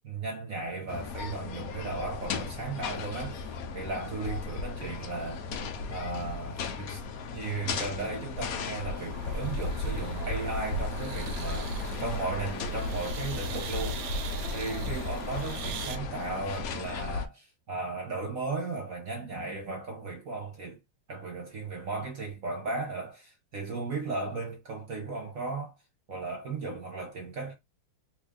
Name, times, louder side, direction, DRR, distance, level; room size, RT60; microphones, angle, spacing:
voice 1, 0.0-5.4 5.9-7.0 7.3-14.0 14.5-20.8 21.1-25.7 26.1-27.5, right 3 dB, 50° right, 1.3 m, -36 dB
sound 1, 0.9-17.3, left 4 dB, 75° left, 0.8 m, -35 dB
sound 2, 9.0-16.0, right 10 dB, 90° right, 1.4 m, -42 dB
3.2 x 2.7 x 3.6 m
omnidirectional pair, 2.2 m